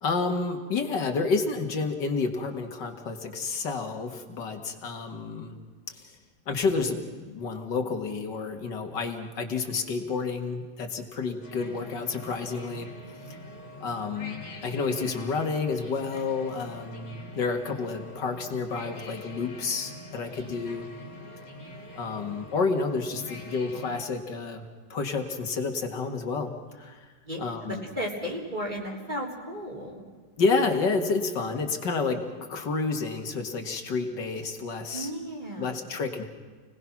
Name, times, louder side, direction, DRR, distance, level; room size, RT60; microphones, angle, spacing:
voice 1, 0.0-5.6 5.9-6.1 6.5-12.9 13.3-13.4 13.8-20.9 22.0-27.1 27.4-27.8 30.4-35.1 35.6-36.3, left 4 dB, 85° left, 4 dB, 2.5 m, -30 dB
sound 1, 11.4-24.0, left 1 dB, 70° left, 3.3 m, -44 dB
voice 2, 27.3-30.0 34.9-35.7, equal, 25° right, -2 dB, 3.9 m, -34 dB
29.5 x 19.0 x 6.1 m, 1.5 s
omnidirectional pair, 1.9 m